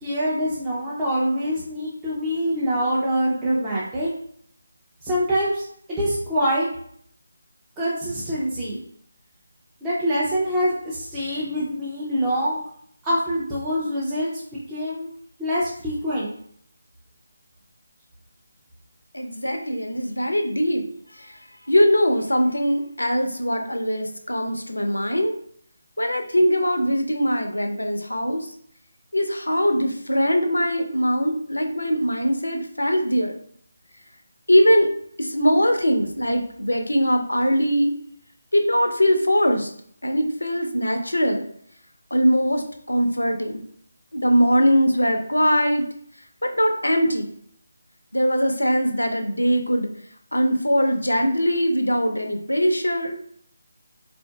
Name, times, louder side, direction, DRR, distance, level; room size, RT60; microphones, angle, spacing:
voice 1, 0.0-4.1 5.0-6.7 7.8-8.8 9.8-12.6 13.0-15.1 15.4-16.3, equal, 15° right, -8 dB, 0.6 m, -25 dB
voice 2, 19.1-20.8 21.2-21.4 21.7-25.4 26.0-28.5 29.1-33.4 34.5-34.9 35.2-37.9 38.5-39.7 40.0-41.5 42.1-43.6 44.1-45.9 46.4-47.3 48.1-49.9 50.3-53.2, equal, 85° left, 5 dB, 0.6 m, -21 dB
3.6 x 2.5 x 2.3 m, 0.64 s
figure-of-eight pair, 155°, 0 cm